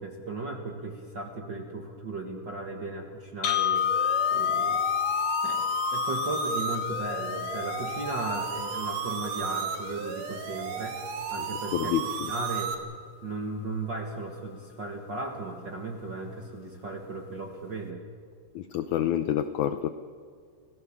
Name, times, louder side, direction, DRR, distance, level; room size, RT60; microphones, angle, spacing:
voice 1, 0.0-3.9 4.3-4.8 5.4-11.0 11.3-12.7 13.2-18.0, right 2 dB, 45° right, 2 dB, 1.6 m, -36 dB
sound 1, 3.4-11.5, left 9 dB, 60° left, 1.5 m, -30 dB
sound 2, 3.8-12.8, right 7 dB, 90° right, 3.5 m, -34 dB
voice 2, 11.7-12.3 18.6-19.9, left 11 dB, 80° left, 11 dB, 1.7 m, -28 dB
29.0 x 16.0 x 7.2 m, 2.1 s
omnidirectional pair, 4.2 m